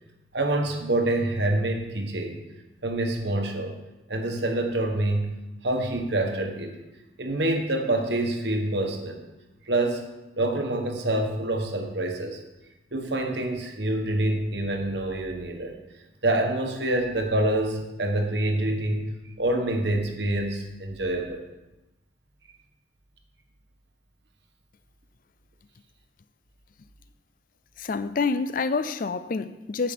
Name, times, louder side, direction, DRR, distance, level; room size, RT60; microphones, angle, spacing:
voice 1, 0.3-2.4 2.8-3.7 4.1-5.4 5.6-6.8 7.2-9.2 9.7-10.0 10.4-12.4 12.9-15.8 16.2-21.4, right 1 dB, 60° right, 1.4 m, -26 dB
voice 2, 27.8-29.9, left 4 dB, 45° left, 0.4 m, -27 dB
9.1 x 5.9 x 7.5 m
head